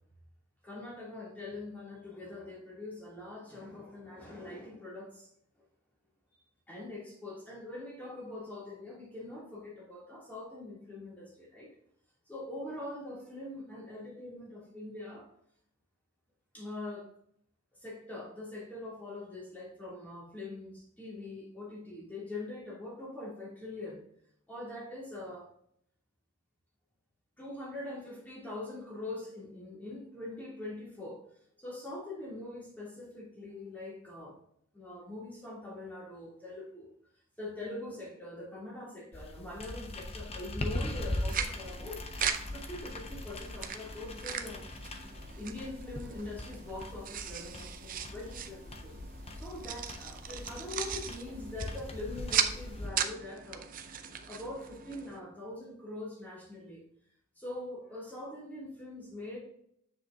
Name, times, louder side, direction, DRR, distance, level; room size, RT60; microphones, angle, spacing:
voice 1, 0.6-5.3 6.7-11.7 12.3-15.3 16.5-17.1 17.8-24.0 24.5-25.5 27.4-31.2 31.6-34.4 34.7-36.9 37.4-42.0 42.5-44.7 45.4-48.9 49.3-53.7 54.3-56.8 57.4-59.4, left 2 dB, 10° left, -5 dB, 2.8 m, -43 dB
sound 1, 39.1-52.9, left 1 dB, 25° left, 0.7 m, -40 dB
sound 2, 40.9-55.2, right 8 dB, 40° right, 0.5 m, -38 dB
7.6 x 6.6 x 2.7 m, 0.69 s
head